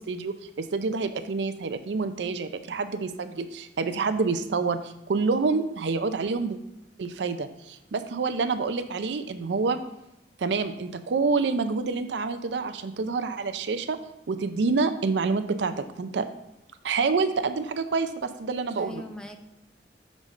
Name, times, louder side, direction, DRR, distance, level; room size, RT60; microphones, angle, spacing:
voice 1, 0.0-6.6 7.0-9.8 10.4-14.0 14.3-16.3 16.8-19.0, right 4 dB, 75° right, 10 dB, 0.5 m, -27 dB
voice 2, 18.8-19.4, left 1 dB, 5° left, 5 dB, 0.5 m, -42 dB
6.2 x 5.2 x 3.2 m, 0.89 s
head